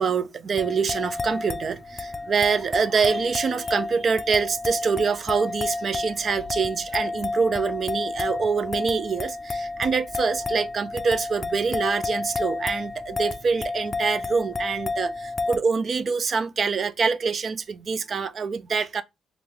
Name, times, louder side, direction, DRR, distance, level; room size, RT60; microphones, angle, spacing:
voice 1, 0.0-19.0, right 5 dB, 45° right, 0.3 m, -25 dB
sound 1, 0.6-15.6, left 3 dB, 25° left, 0.4 m, -31 dB
3.4 x 2.4 x 2.9 m
cardioid pair, 90°, 0 cm